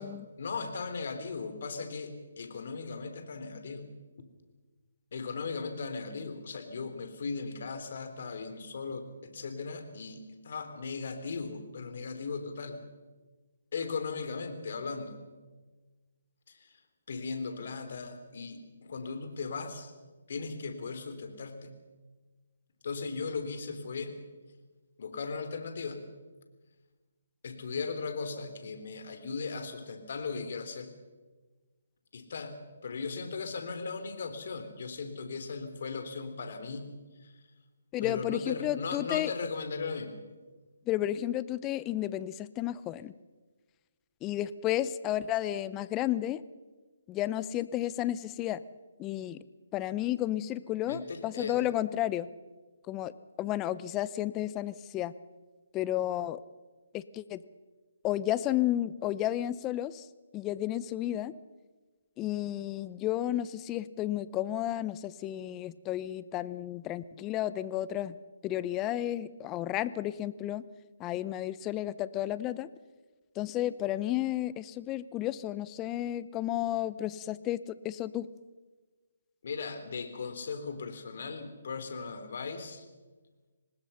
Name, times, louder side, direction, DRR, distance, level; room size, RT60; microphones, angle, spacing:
voice 1, 0.4-3.9 5.1-12.8 13.7-15.2 16.5-16.7 17.1-19.9 20.3-21.7 22.8-24.1 25.0-26.0 27.4-30.9 32.1-36.9 37.2-37.3 38.0-40.2 50.9-51.6 79.4-82.8, left 4 dB, 60° left, 8 dB, 3.5 m, -37 dB
voice 2, 37.9-39.3 40.9-43.1 44.2-46.4 47.1-48.6 49.0-49.4 49.7-52.3 52.9-53.1 53.4-55.1 55.7-56.4 56.9-57.4 58.0-60.1 60.3-61.3 62.2-68.2 68.4-70.6 71.0-72.7 73.4-78.3, left 13 dB, 20° left, 17 dB, 0.7 m, -32 dB
25.5 x 19.5 x 5.8 m, 1.3 s
hypercardioid pair, 150°, 0 cm